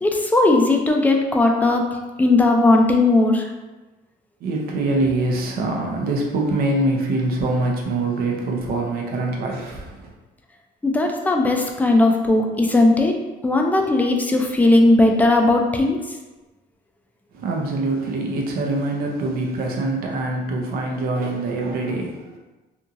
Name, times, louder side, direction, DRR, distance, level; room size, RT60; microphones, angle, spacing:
voice 1, 0.0-1.9 2.2-3.5 10.8-13.1 13.4-16.0, left 2 dB, 10° left, 2 dB, 0.3 m, -17 dB
voice 2, 4.4-10.1 17.3-22.4, right 2 dB, 65° right, 0 dB, 0.6 m, -24 dB
2.8 x 2.6 x 2.5 m, 1.1 s
cardioid pair, 110°, 17 cm